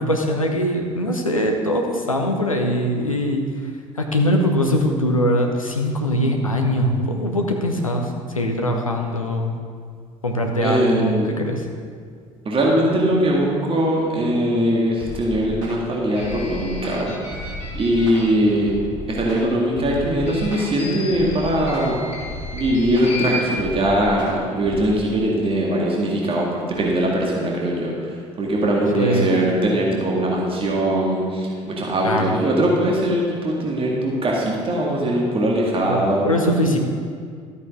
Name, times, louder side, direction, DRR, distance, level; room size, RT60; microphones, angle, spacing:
voice 1, 0.0-9.5 10.2-11.7 29.0-29.3 32.0-32.3 35.8-36.8, equal, 85° left, 2 dB, 0.9 m, -22 dB
voice 2, 10.6-11.3 12.5-17.4 17.7-18.7 19.1-22.0 22.5-27.9 28.4-36.3, right 1 dB, 30° right, -3 dB, 2.0 m, -21 dB
sound 1, 15.0-24.8, left 1 dB, 70° right, 2.8 m, -35 dB
sound 2, 16.1-18.6 20.2-23.4, left 1 dB, 40° left, 2.5 m, -35 dB
13.5 x 8.4 x 3.7 m, 2.1 s
figure-of-eight pair, 55°, 17 cm